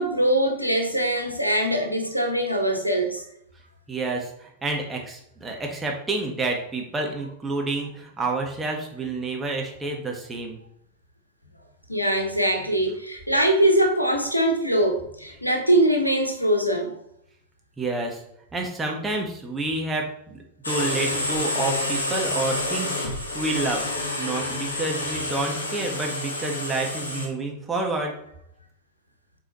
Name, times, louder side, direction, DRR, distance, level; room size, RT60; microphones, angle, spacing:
voice 1, 0.0-3.3 11.9-16.9, right 1 dB, 90° left, 3 dB, 1.1 m, -22 dB
voice 2, 3.9-10.6 17.8-18.2 18.5-23.8 24.2-28.1, right 3 dB, 15° right, 0 dB, 1.5 m, -29 dB
sound 1, 20.6-27.3, left 2 dB, 70° left, 1.5 m, -28 dB
7.9 x 4.6 x 3.1 m, 0.74 s
figure-of-eight pair, 90°, 0 cm